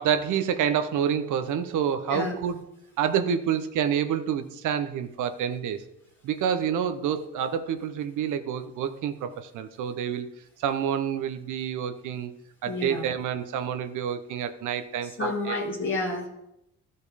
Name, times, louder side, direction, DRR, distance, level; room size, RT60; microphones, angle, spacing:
voice 1, 0.0-2.6 3.0-5.8 6.2-10.3 10.6-12.3 12.6-15.6, right 8 dB, 80° right, 9 dB, 0.8 m, -28 dB
voice 2, 12.7-13.0 15.0-16.3, left 2 dB, 40° left, -2 dB, 1.5 m, -30 dB
13.0 x 5.2 x 4.1 m, 0.83 s
cardioid pair, 90°, 30 cm